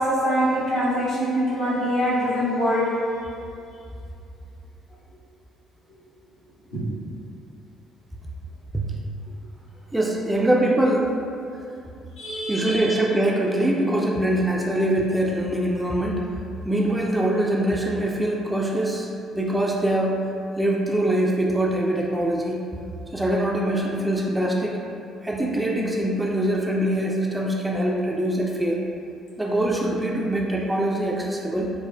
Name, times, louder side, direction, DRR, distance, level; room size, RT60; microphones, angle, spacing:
voice 1, 0.0-2.9 6.7-6.8 12.2-13.0, equal, 70° left, -12 dB, 1.2 m, -24 dB
voice 2, 9.9-11.1 12.5-16.3 16.7-20.2 20.6-22.6 23.1-24.8 25.2-28.8 29.4-31.7, right 1 dB, 10° right, -2 dB, 0.3 m, -23 dB
3.5 x 2.3 x 2.2 m, 2.5 s
figure-of-eight pair, 45°, 0 cm